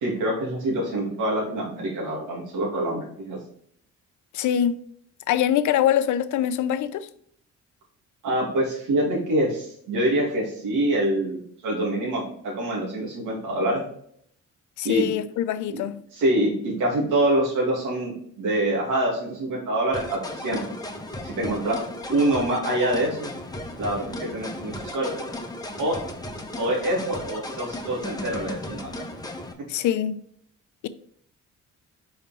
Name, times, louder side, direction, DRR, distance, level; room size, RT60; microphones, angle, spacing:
voice 1, 0.0-3.4 8.2-13.8 14.8-15.1 15.7-15.8 16.1-20.6 21.2-21.8 22.1-23.4 23.8-25.1 25.8-26.0 26.6-29.0, right 1 dB, 90° right, 2.5 m, -25 dB
voice 2, 4.3-4.7 5.3-7.1 14.8-16.0 29.7-30.2, left 10 dB, 75° left, 0.6 m, -23 dB
sound 1, 19.9-29.5, left 1 dB, 10° left, 1.1 m, -35 dB
5.1 x 5.1 x 4.2 m
cardioid pair, 90°, 30 cm